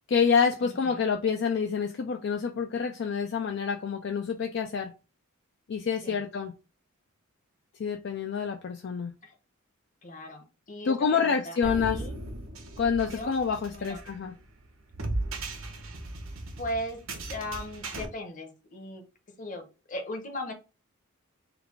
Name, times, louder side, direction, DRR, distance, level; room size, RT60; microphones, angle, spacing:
voice 1, 0.1-4.9 5.7-6.5 7.8-9.1 10.8-12.0 12.8-14.3, left 6 dB, 55° left, 0.4 m, -27 dB
voice 2, 0.6-1.0 6.0-6.2 9.2-9.3 10.0-12.2 13.1-13.3 13.7-14.0 16.6-17.0 17.3-19.0 19.4-20.5, left 1 dB, 35° left, 0.9 m, -38 dB
sound 1, 11.6-18.1, right 2 dB, 70° right, 0.9 m, -37 dB
3.9 x 2.3 x 4.6 m
head